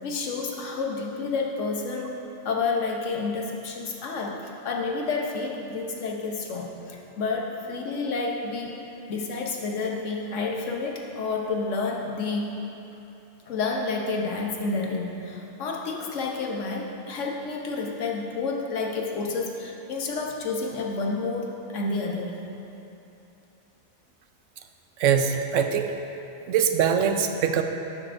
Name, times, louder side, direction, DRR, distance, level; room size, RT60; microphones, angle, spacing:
voice 1, 0.0-2.2 2.4-8.7 9.1-12.5 13.5-22.4, left 4 dB, 85° left, 0 dB, 1.2 m, -30 dB
voice 2, 25.0-25.9 26.5-27.6, right 7 dB, 85° right, 6 dB, 0.9 m, -22 dB
11.0 x 7.5 x 2.6 m, 3.0 s
omnidirectional pair, 1.2 m